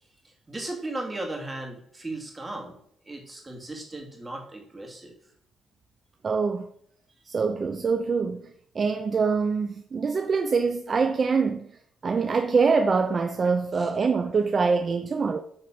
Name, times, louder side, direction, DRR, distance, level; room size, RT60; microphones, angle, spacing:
voice 1, 0.5-2.8 3.1-5.1 13.8-13.9, right 2 dB, 20° right, 2.4 m, -36 dB
voice 2, 6.2-6.7 7.3-8.4 8.7-11.7 12.0-15.4, right 5 dB, 40° right, 0.5 m, -24 dB
8.6 x 4.1 x 6.1 m
cardioid pair, 90°, 0 cm